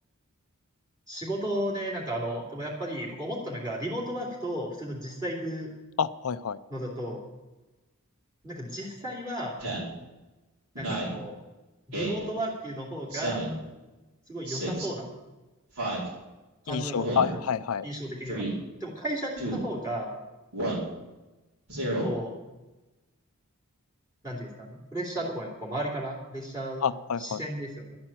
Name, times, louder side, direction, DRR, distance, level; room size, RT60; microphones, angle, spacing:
voice 1, 1.1-5.7 6.7-7.2 8.4-9.6 10.8-11.3 11.9-13.5 14.3-15.1 16.6-17.2 17.8-18.5 18.8-20.2 22.0-22.3 24.2-26.9 27.2-28.0, right 1 dB, 15° right, -3 dB, 2.7 m, -34 dB
voice 2, 6.0-6.6 16.7-17.9 26.8-27.4, left 7 dB, 70° left, 13 dB, 0.5 m, -28 dB
Speech synthesizer, 9.6-9.9 10.7-11.2 11.9-12.2 13.1-13.6 14.5-14.9 15.8-16.1 17.0-17.3 18.3-18.5 19.4-19.6 20.5-20.9 21.7-22.1, right 1 dB, 65° right, 4.7 m, -31 dB
12.0 x 8.8 x 8.9 m, 1.1 s
head